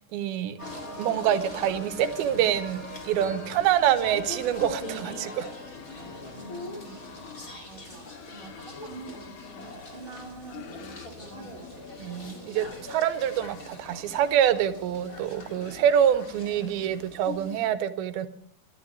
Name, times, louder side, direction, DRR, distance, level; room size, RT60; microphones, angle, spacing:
voice 1, 0.1-0.6 1.0-5.5 12.0-18.3, right 10 dB, 90° right, 11 dB, 2.7 m, -26 dB
sound 1, 0.6-17.7, left 1 dB, 25° left, 2.3 m, -41 dB
sound 2, 4.4-7.5 7.9-11.1 11.4-14.7 15.2-17.4, left 7 dB, 75° left, 2.7 m, -49 dB
voice 2, 6.3-7.1 7.6-11.7, right 3 dB, 15° right, -4 dB, 2.7 m, -46 dB
25.0 x 12.0 x 3.1 m, 0.63 s
omnidirectional pair, 4.2 m